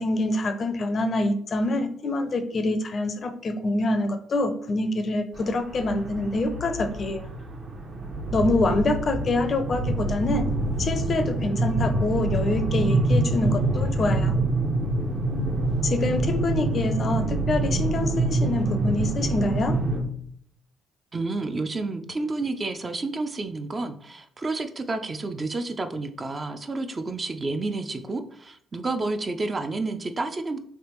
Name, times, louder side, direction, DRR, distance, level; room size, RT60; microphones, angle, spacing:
voice 1, 0.0-7.2 8.3-10.5 10.8-14.4 15.8-19.8, left 2 dB, 50° left, 9 dB, 0.4 m, -26 dB
sound 1, 5.3-20.0, right 2 dB, 55° right, 0.8 m, -26 dB
voice 2, 21.1-30.6, right 3 dB, 35° right, 7 dB, 0.4 m, -30 dB
3.3 x 2.5 x 3.0 m, 0.64 s
hypercardioid pair, 55°, 0 cm